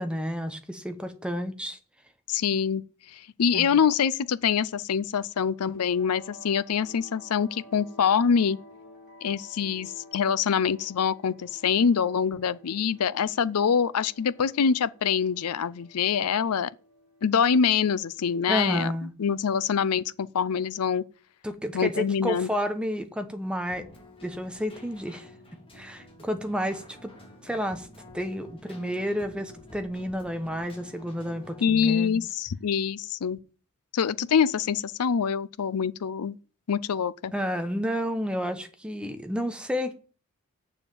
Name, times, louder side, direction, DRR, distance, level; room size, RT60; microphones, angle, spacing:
voice 1, 0.0-1.8 3.5-3.8 18.5-19.1 21.4-23.8 24.2-25.3 25.7-27.1 27.4-27.9 28.1-32.2 37.3-39.9, equal, 5° right, 1.0 m, -31 dB
voice 2, 2.3-2.8 3.1-8.6 9.2-16.7 17.2-18.9 19.2-21.0 21.7-22.5 31.6-33.4 33.9-36.4 36.7-37.3, left 7 dB, 85° left, 0.5 m, -25 dB
sound 1, 5.5-19.6, equal, 45° left, 4.2 m, -53 dB
Keyboard (musical), 23.7-31.7, left 2 dB, 25° left, 2.3 m, -49 dB
7.2 x 6.9 x 7.1 m
head